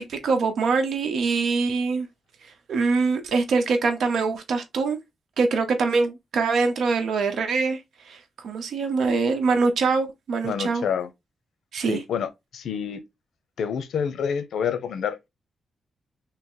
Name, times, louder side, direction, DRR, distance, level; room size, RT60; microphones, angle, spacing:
voice 1, 0.0-2.1 2.4-5.0 5.4-10.8 11.7-12.0, right 4 dB, 80° right, 0.9 m, -24 dB
voice 2, 10.4-11.1 11.8-13.0 13.6-15.2, left 7 dB, 85° left, 0.7 m, -28 dB
3.3 x 2.9 x 3.7 m
cardioid pair, 105°, 0 cm